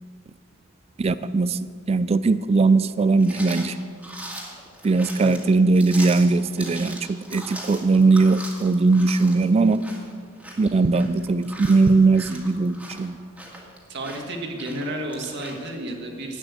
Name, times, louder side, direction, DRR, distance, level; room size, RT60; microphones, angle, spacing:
voice 1, 1.0-1.6 1.9-3.8 4.8-9.8 10.6-13.2, right 3 dB, 30° right, 14 dB, 0.3 m, -19 dB
sound 1, 3.2-15.7, right 1 dB, 5° right, 2.0 m, -40 dB
voice 2, 13.9-16.4, right 1 dB, 60° right, 1 dB, 1.7 m, -32 dB
11.5 x 8.9 x 7.9 m, 2.1 s
head